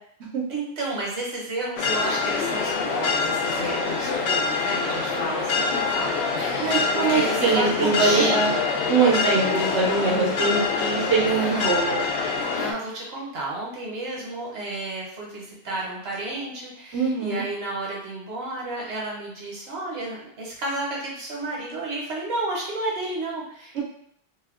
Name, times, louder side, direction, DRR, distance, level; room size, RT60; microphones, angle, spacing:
voice 1, 0.5-8.3 11.3-11.7 12.6-23.8, right 2 dB, 70° right, -3 dB, 1.2 m, -32 dB
sound 1, 1.8-12.7, left 4 dB, 80° left, 0.8 m, -25 dB
voice 2, 6.6-8.5 8.9-12.1 16.9-17.4 23.7-23.8, right 4 dB, 90° right, -5 dB, 1.1 m, -23 dB
2.7 x 2.1 x 3.6 m, 0.69 s
omnidirectional pair, 1.1 m